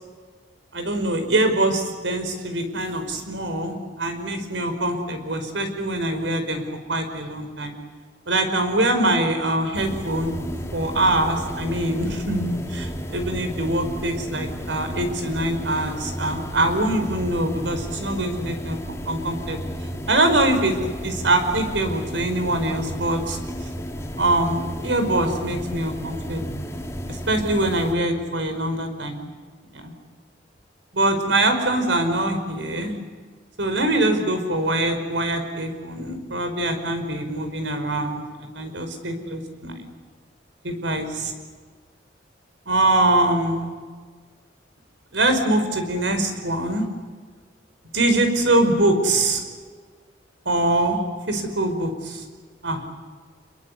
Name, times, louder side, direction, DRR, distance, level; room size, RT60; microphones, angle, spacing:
voice 1, 0.7-6.6 6.9-7.7 8.3-10.4 10.7-18.8 19.1-19.6 20.1-20.7 21.0-23.4 24.2-26.5 27.1-29.3 29.7-29.9 30.9-33.0 33.6-39.9 40.6-41.3 42.7-43.7 45.1-46.8 47.9-49.4 50.5-51.0 51.3-52.2 52.6-52.8, right 1 dB, 85° right, 7 dB, 5.1 m, -23 dB
sound 1, 9.7-27.9, equal, 15° left, 2.4 m, -33 dB
27.0 x 22.5 x 8.4 m, 1.5 s
head